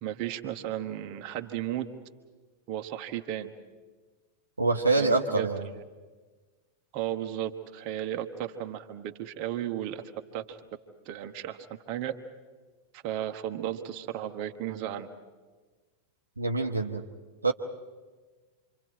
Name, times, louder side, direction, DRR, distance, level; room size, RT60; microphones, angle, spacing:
voice 1, 0.0-1.9 2.7-3.5 5.0-5.5 5.7-5.8 6.9-10.0 10.3-10.6 11.0-12.1 12.9-15.1, right 11 dB, 40° right, 6 dB, 1.3 m, -34 dB
voice 2, 4.6-5.7 16.4-17.0 17.4-17.5, right 3 dB, 80° right, 4 dB, 1.0 m, -25 dB
28.0 x 25.0 x 4.7 m, 1.4 s
figure-of-eight pair, 90°, 0 cm